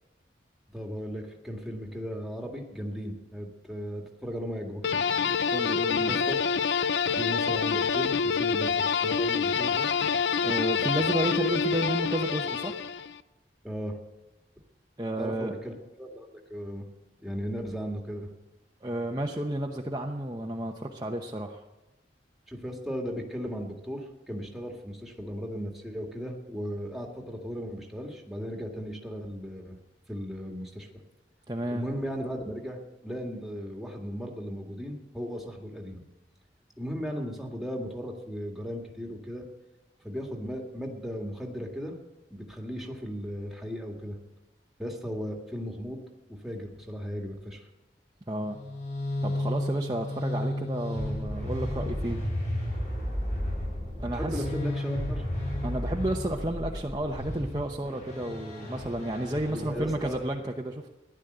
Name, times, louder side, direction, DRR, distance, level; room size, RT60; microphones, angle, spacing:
voice 1, 0.7-5.1 5.9-6.4 7.2-9.9 13.6-14.0 15.2-16.9 17.2-18.3 22.5-29.8 30.1-30.9 31.7-36.0 36.8-39.5 40.0-42.0 42.3-44.2 44.8-46.0 46.3-47.7 54.1-55.2 59.5-60.1, equal, ahead, 1 dB, 1.9 m, -36 dB
sound 1, 4.8-13.2, left 6 dB, 80° left, 0.5 m, -27 dB
voice 2, 5.5-6.2 10.4-12.8 15.0-15.5 18.8-21.6 31.5-31.8 48.3-48.6 49.2-52.2 52.5-52.6 54.0-54.5 55.6-60.9, right 1 dB, 20° right, 0 dB, 0.9 m, -32 dB
sound 2, 48.4-60.2, left 1 dB, 40° left, 7.5 m, -33 dB
15.5 x 11.5 x 8.0 m, 1.1 s
head